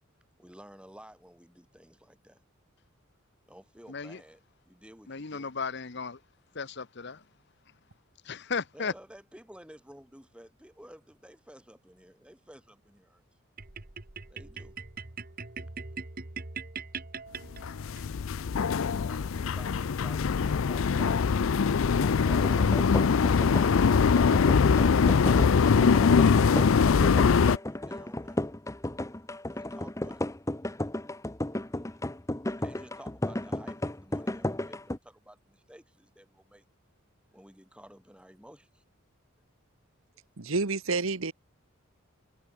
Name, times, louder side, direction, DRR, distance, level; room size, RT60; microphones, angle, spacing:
voice 1, 0.4-2.4 3.5-5.5 8.7-13.2 14.3-14.7 18.8-21.3 21.8-24.2 24.9-28.5 29.5-30.2 32.4-36.6 37.3-38.8, equal, 5° right, 4.6 m, -53 dB
voice 2, 3.9-4.2 5.1-6.2 6.5-7.2 8.2-8.9, left 5 dB, 55° left, 1.0 m, -35 dB
sound 1, 13.6-18.0, right 5 dB, 45° right, 1.6 m, -41 dB
sound 2, 17.6-27.6, left 5 dB, 70° left, 0.5 m, -23 dB
sound 3, 22.3-35.0, left 1 dB, 15° left, 0.9 m, -34 dB
voice 3, 40.4-41.3, right 3 dB, 75° right, 1.3 m, -29 dB
head